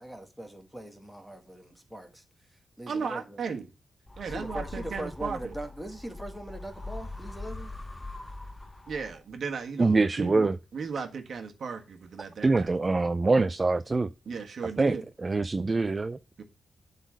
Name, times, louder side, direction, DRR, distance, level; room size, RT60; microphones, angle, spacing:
voice 1, 0.0-2.2 2.8-3.4 4.3-7.7, right 1 dB, ahead, 1.9 m, -40 dB
voice 2, 2.9-3.7 4.2-5.5 8.9-10.5 10.7-12.7 14.3-15.0 16.4-16.5, right 5 dB, 70° right, 1.5 m, -35 dB
sound 1, 4.1-9.4, left 2 dB, 20° left, 1.1 m, -42 dB
voice 3, 9.8-10.6 12.4-14.1 14.8-16.2, right 3 dB, 30° right, 0.4 m, -24 dB
8.0 x 4.1 x 6.3 m
cardioid pair, 80°, 0 cm